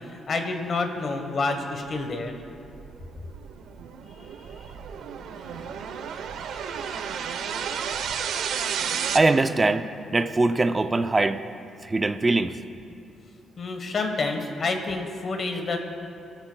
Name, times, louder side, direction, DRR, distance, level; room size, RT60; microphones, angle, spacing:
voice 1, 0.0-2.3 4.6-4.7 5.4-5.7 13.6-15.8, left 3 dB, 35° left, 5 dB, 1.1 m, -29 dB
sound 1, 2.3-9.2, right 7 dB, 80° right, 0.7 m, -32 dB
voice 2, 9.1-9.9 10.1-11.4 11.8-12.5, right 2 dB, 15° right, 9 dB, 0.4 m, -22 dB
22.0 x 13.5 x 2.2 m, 2.6 s
cardioid pair, 180°, 0 cm